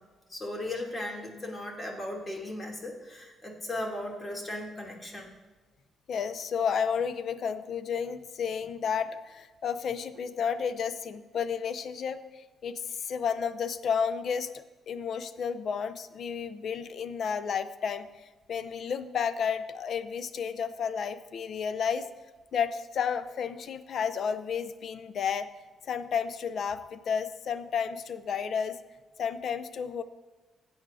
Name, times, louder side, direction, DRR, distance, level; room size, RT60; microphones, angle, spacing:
voice 1, 0.3-5.3, left 1 dB, 30° left, 0 dB, 2.9 m, -37 dB
voice 2, 6.1-14.5 14.9-22.1 22.5-25.5 25.9-28.8 29.2-30.0, left 7 dB, 65° left, 13 dB, 0.6 m, -32 dB
15.5 x 8.7 x 2.7 m, 1.3 s
cardioid pair, 75°, 0 cm